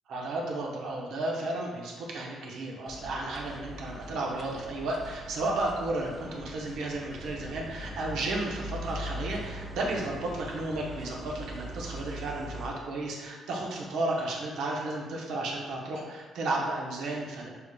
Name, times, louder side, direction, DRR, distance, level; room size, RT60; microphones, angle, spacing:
voice 1, 0.1-17.5, right 2 dB, 85° right, -2 dB, 0.9 m, -33 dB
sound 1, 2.9-12.7, equal, 30° right, 0.6 m, -41 dB
5.8 x 3.3 x 2.4 m, 1.3 s
cardioid pair, 90°, 0 cm